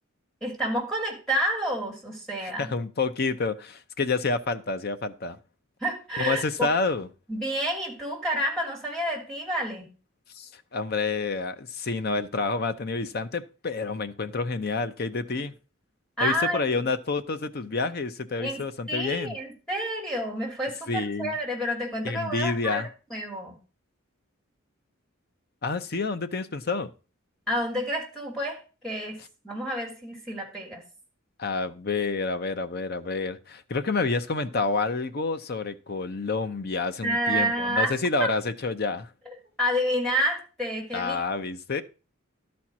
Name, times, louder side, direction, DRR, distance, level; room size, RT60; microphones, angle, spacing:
voice 1, 0.4-2.7 5.8-6.7 7.3-9.9 16.2-16.9 18.4-18.6 18.9-23.5 27.5-30.9 37.0-37.9 38.2-38.3 39.3-41.2, equal, 5° left, 2.7 m, -29 dB
voice 2, 2.4-5.4 6.2-7.1 10.3-15.5 16.2-19.4 20.9-21.3 22.0-22.9 25.6-26.9 31.4-39.1 40.9-41.8, left 3 dB, 50° left, 0.7 m, -29 dB
12.0 x 4.4 x 6.1 m
head